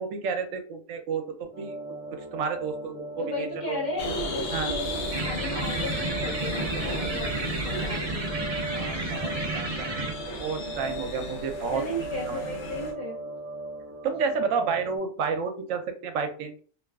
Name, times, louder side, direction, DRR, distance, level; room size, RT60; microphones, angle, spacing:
voice 1, 0.0-1.8 2.1-3.8 4.5-4.7 8.7-9.9 10.4-11.8 12.3-12.4 14.0-16.6, right 5 dB, 80° right, 6 dB, 0.9 m, -31 dB
sound 1, 1.5-15.0, right 2 dB, 35° right, 0.7 m, -38 dB
voice 2, 3.2-4.9 5.2-8.4 10.6-11.0 11.7-13.3, left 1 dB, 55° left, -3 dB, 0.5 m, -35 dB
sound 2, 4.0-12.9, left 1 dB, 80° left, 1.0 m, -35 dB
sound 3, 5.1-10.1, right 2 dB, 60° right, 0.4 m, -32 dB
2.8 x 2.3 x 2.3 m, 0.43 s
omnidirectional pair, 1.3 m